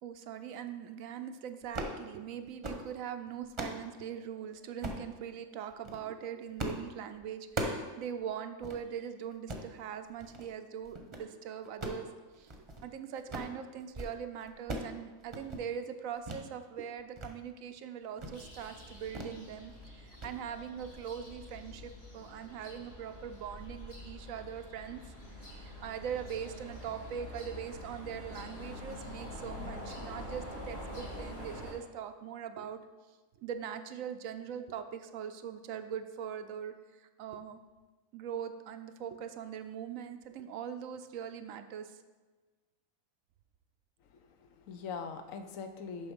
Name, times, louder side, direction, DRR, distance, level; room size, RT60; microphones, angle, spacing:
voice 1, 0.0-12.5 12.8-19.7 20.0-25.0 25.4-32.8 33.4-37.6 38.1-42.0, right 8 dB, 80° right, 9 dB, 1.0 m, -41 dB
sound 1, 1.6-2.0 2.4-2.9 3.3-3.8 4.8-5.1 5.7-6.0 6.6-6.9 7.1-7.9 8.2-8.3 8.6-8.8 9.3-9.7 10.2-10.5 10.8-11.3 11.6-12.9 13.1-13.6 13.8-14.2 14.4-14.9 15.2-15.6 16.2-16.4 16.8-17.3 17.7-17.8 18.2-18.4 19.1-19.4 19.7-19.9 20.2-20.3, right 1 dB, 25° right, 0.8 m, -39 dB
sound 2, 18.3-31.7, left 1 dB, 45° left, 2.7 m, -46 dB
voice 2, 44.1-46.1, left 5 dB, 75° left, 8 dB, 1.1 m, -42 dB
7.0 x 5.9 x 5.2 m, 1.3 s
omnidirectional pair, 1.4 m